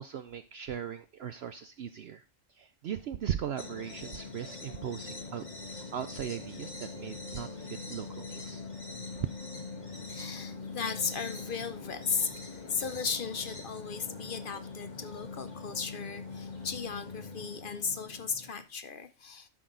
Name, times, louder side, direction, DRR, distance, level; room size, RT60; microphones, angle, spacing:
voice 1, 0.0-2.2 2.5-8.6, right 9 dB, 60° right, 0.7 m, -39 dB
sound 1, 3.6-18.6, left 3 dB, 35° left, 1.6 m, -43 dB
voice 2, 10.1-12.3 12.7-19.5, left 5 dB, 50° left, 0.7 m, -36 dB
11.5 x 6.2 x 3.8 m
omnidirectional pair, 1.3 m